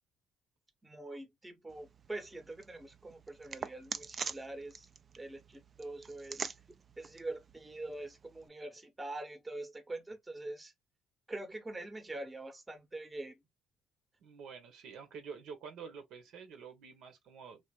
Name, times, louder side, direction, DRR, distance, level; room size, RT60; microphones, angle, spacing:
voice 1, 0.8-4.9 5.2-6.5 7.0-10.7 11.3-13.3, right 2 dB, 20° right, 0.9 m, -44 dB
sound 1, 1.7-8.5, right 5 dB, 40° right, 0.3 m, -46 dB
voice 2, 14.2-17.6, right 6 dB, 75° right, 0.9 m, -48 dB
3.3 x 2.4 x 2.3 m
supercardioid pair, 75°, 0 cm